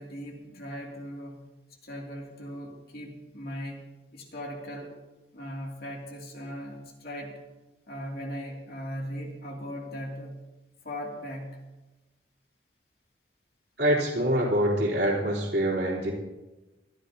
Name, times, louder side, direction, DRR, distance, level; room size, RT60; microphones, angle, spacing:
voice 1, 0.0-1.5 1.8-5.0 5.3-7.4 7.9-10.4 10.8-11.6, equal, 55° left, -1 dB, 2.7 m, -39 dB
voice 2, 13.8-16.1, equal, 65° right, -4 dB, 3.5 m, -25 dB
22.0 x 13.5 x 2.9 m, 1.1 s
head